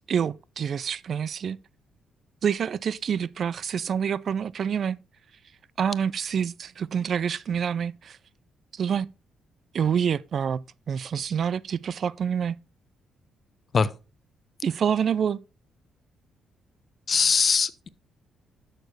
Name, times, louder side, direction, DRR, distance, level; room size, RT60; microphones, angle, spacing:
voice 1, 0.0-1.6 2.4-5.0 5.8-8.2 8.7-9.1 9.7-12.6 14.6-15.4, right 7 dB, 55° right, 0.3 m, -27 dB
voice 2, 17.1-17.9, left 5 dB, 45° left, 0.6 m, -21 dB
12.5 x 6.6 x 3.3 m
cardioid pair, 90°, 0 cm